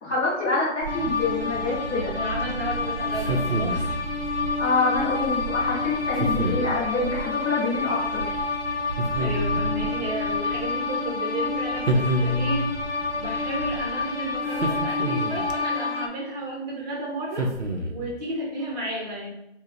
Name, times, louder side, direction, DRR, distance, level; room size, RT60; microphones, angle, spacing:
voice 1, 0.0-2.1 4.6-8.3, left 3 dB, 5° left, -15 dB, 0.7 m, -26 dB
Camera, 0.8-15.6, right 4 dB, 55° right, 0.5 m, -37 dB
sound 1, 0.9-16.1, left 4 dB, 60° left, 0.6 m, -29 dB
voice 2, 2.1-4.0 9.2-12.7 13.1-17.5 17.9-19.3, right 1 dB, 35° right, -3 dB, 1.1 m, -32 dB
sound 2, 3.2-4.0 6.2-6.8 9.0-9.7 11.9-12.7 14.5-15.5 17.3-18.1, right 1 dB, 85° right, 0.8 m, -27 dB
3.0 x 2.4 x 3.9 m, 0.84 s
hypercardioid pair, 165°, 34 cm